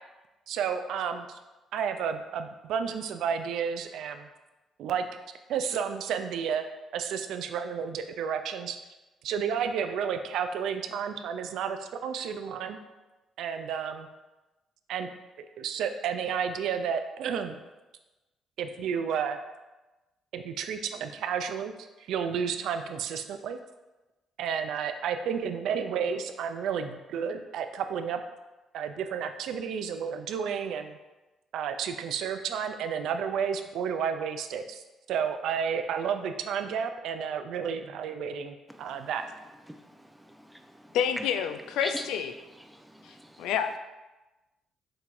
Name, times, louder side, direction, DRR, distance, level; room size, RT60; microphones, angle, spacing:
voice 1, 0.5-1.4 1.7-4.3 4.8-5.1 5.5-6.6 6.9-8.8 9.2-12.8 13.4-14.1 14.9-15.1 15.4-17.6 18.6-19.4 20.3-21.7 22.1-23.6 24.4-28.2 28.7-31.0 31.5-34.8 35.1-39.2, right 7 dB, 75° right, 8 dB, 0.3 m, -31 dB
voice 2, 39.7-41.2 41.8-42.1, right 1 dB, 5° right, 5 dB, 0.5 m, -41 dB
voice 3, 40.9-42.3 43.4-43.8, left 8 dB, 80° left, 7 dB, 0.3 m, -28 dB
5.7 x 3.2 x 2.5 m, 1.1 s
supercardioid pair, 70°, 0 cm